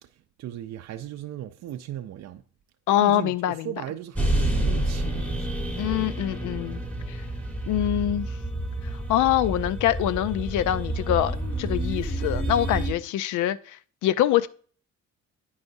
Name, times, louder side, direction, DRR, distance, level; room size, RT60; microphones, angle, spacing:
voice 1, 0.0-2.4 3.0-5.5, right 12 dB, 60° right, 0.5 m, -37 dB
voice 2, 2.9-3.7 5.8-6.8 7.1-7.2 7.7-8.3 9.1-11.3 11.6-14.5, left 12 dB, 80° left, 0.5 m, -24 dB
sound 1, 4.1-12.9, right 1 dB, 5° left, 1.4 m, -29 dB
9.4 x 4.9 x 2.6 m
cardioid pair, 90°, 30 cm